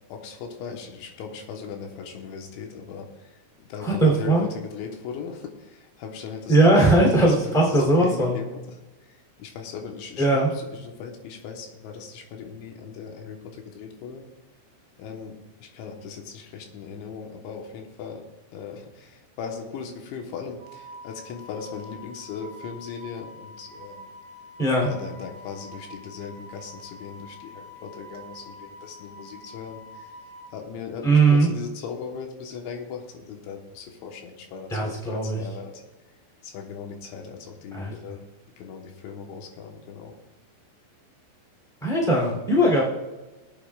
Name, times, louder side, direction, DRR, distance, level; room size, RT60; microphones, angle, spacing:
voice 1, 0.1-8.6 9.1-14.2 15.0-18.2 18.5-24.1 24.8-30.1 30.5-35.8 36.4-38.2 38.6-40.2, left 6 dB, 90° left, 2 dB, 3.6 m, -38 dB
voice 2, 3.8-4.5 6.5-8.4 10.2-10.5 24.6-24.9 31.0-31.5 34.7-35.5 37.7-37.9 41.8-42.8, right 2 dB, ahead, -2 dB, 2.0 m, -19 dB
Wind instrument woodwind instrument, 20.6-30.5, left 1 dB, 25° right, 2.5 m, -45 dB
22.5 x 8.7 x 2.4 m, 1.1 s
omnidirectional pair, 5.1 m